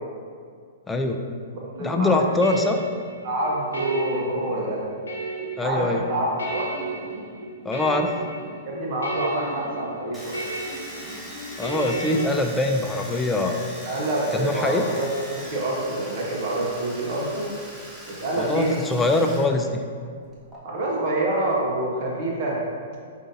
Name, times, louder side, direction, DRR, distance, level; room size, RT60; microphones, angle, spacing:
voice 1, 0.9-1.3 1.8-2.8 5.6-6.0 7.6-8.2 11.6-13.7 14.3-14.8 18.4-19.8, left 2 dB, 10° left, 3 dB, 0.3 m, -23 dB
voice 2, 1.5-2.2 3.2-4.8 5.6-6.7 8.6-10.4 13.8-17.5 18.1-18.8 20.6-22.6, right 1 dB, 50° right, -3 dB, 0.8 m, -27 dB
sound 1, 1.7-12.3, right 2 dB, 85° left, 0.9 m, -34 dB
Domestic sounds home sounds, 10.1-19.5 19.7-20.6, equal, 5° right, 0.8 m, -40 dB
4.8 x 2.6 x 2.7 m, 2.1 s
hypercardioid pair, 125°, 0 cm